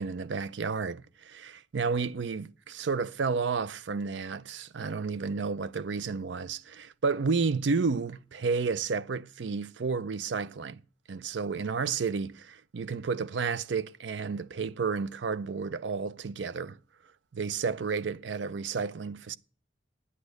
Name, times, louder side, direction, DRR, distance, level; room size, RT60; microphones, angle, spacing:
voice 1, 0.0-10.8 11.1-16.8 17.3-19.4, right 5 dB, 70° right, 0.5 m, -31 dB
9.7 x 8.4 x 8.0 m
head